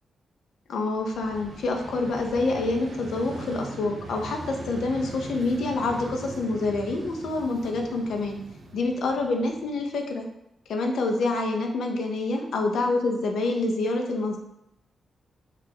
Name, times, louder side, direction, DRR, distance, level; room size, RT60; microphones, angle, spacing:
voice 1, 0.7-8.4 8.7-10.3 10.7-14.4, left 2 dB, 75° left, 3 dB, 0.5 m, -27 dB
Vehicle, 0.9-9.9, right 2 dB, 60° right, 0.5 m, -40 dB
2.8 x 2.3 x 3.8 m, 0.82 s
wide cardioid pair, 155°, 0 cm